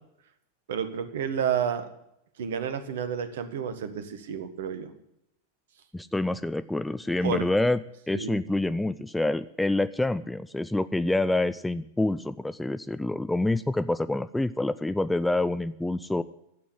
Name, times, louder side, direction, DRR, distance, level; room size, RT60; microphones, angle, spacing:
voice 1, 0.7-1.9 2.4-4.9 7.2-7.4 8.1-8.4, right 8 dB, 60° right, 11 dB, 1.5 m, -30 dB
voice 2, 5.9-7.8 8.1-16.2, left 2 dB, 5° left, 14 dB, 0.4 m, -27 dB
12.5 x 8.5 x 9.7 m, 0.80 s
figure-of-eight pair, 90°, 0 cm